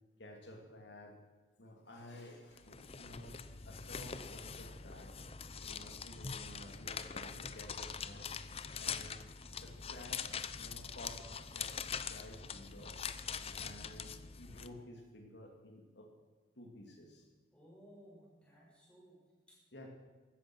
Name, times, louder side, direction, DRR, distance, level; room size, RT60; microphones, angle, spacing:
voice 1, 0.2-1.2 1.6-5.2 5.6-8.3 8.8-9.3 9.5-10.3 10.6-11.7 12.1-13.0 13.2-16.1 16.6-17.3 19.7-19.9, left 1 dB, 75° left, 2 dB, 2.5 m, -53 dB
sound 1, 2.6-14.7, left 6 dB, 35° left, 0.7 m, -43 dB
voice 2, 17.5-19.6, equal, 5° left, -5 dB, 6.8 m, -59 dB
16.0 x 13.5 x 6.1 m, 1.3 s
head